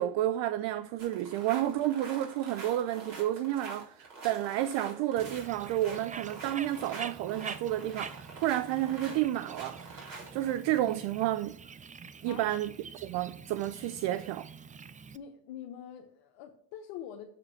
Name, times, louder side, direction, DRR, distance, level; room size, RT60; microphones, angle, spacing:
voice 1, 0.0-11.6 12.2-14.5, right 13 dB, 65° right, 0.6 m, -31 dB
sound 1, 1.0-10.5, right 3 dB, 45° right, 4.0 m, -46 dB
Bird, 5.2-15.2, right 5 dB, 15° right, 0.4 m, -46 dB
voice 2, 15.1-17.3, left 9 dB, 75° left, 1.1 m, -44 dB
7.9 x 5.1 x 7.3 m
hypercardioid pair, 65°, 47 cm